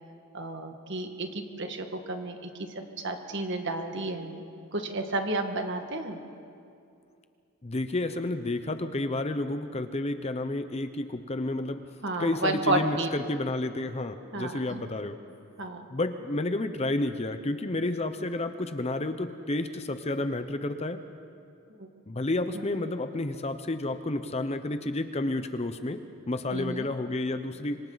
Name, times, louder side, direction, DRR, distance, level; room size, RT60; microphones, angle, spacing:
voice 1, 0.3-4.5 4.7-6.2 12.0-13.1 14.3-14.8 15.6-15.8 21.8-21.9 22.5-22.6 26.5-26.9, right 2 dB, 55° right, 5 dB, 1.7 m, -32 dB
voice 2, 7.6-11.8 12.2-15.2 15.9-21.0 22.1-26.0 26.3-27.8, left 2 dB, 30° left, 9 dB, 0.7 m, -30 dB
26.0 x 25.0 x 4.0 m, 2.5 s
head